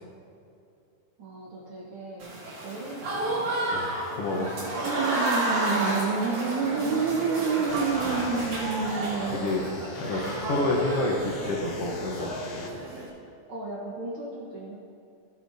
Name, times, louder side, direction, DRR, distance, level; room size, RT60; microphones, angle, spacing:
voice 1, 1.2-3.8 5.3-8.2 10.5-10.7 13.5-14.8, right 1 dB, 50° right, -5 dB, 1.8 m, -40 dB
Applause / Crowd, 2.2-13.1, right 1 dB, 70° right, 3.5 m, -31 dB
voice 2, 4.2-4.6 8.0-8.5 9.3-9.6 10.0-12.3, left 2 dB, 60° left, -2 dB, 1.7 m, -29 dB
sound 1, 4.8-9.7, right 5 dB, 85° right, 2.2 m, -28 dB
sound 2, 7.7-12.7, left 4 dB, 85° left, 1.1 m, -42 dB
16.0 x 8.9 x 2.7 m, 2.7 s
omnidirectional pair, 3.5 m